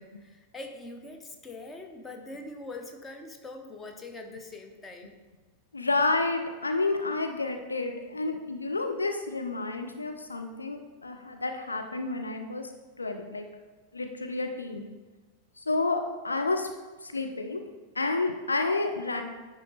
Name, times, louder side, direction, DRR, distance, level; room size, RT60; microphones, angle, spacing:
voice 1, 0.0-5.1, left 2 dB, 15° left, 4 dB, 0.9 m, -43 dB
voice 2, 5.7-12.7 13.0-13.5 13.9-14.9 15.7-16.7 17.0-17.6 18.0-19.2, left 3 dB, 80° left, 5 dB, 0.5 m, -30 dB
10.0 x 4.1 x 4.0 m, 1.3 s
figure-of-eight pair, 90°, 0 cm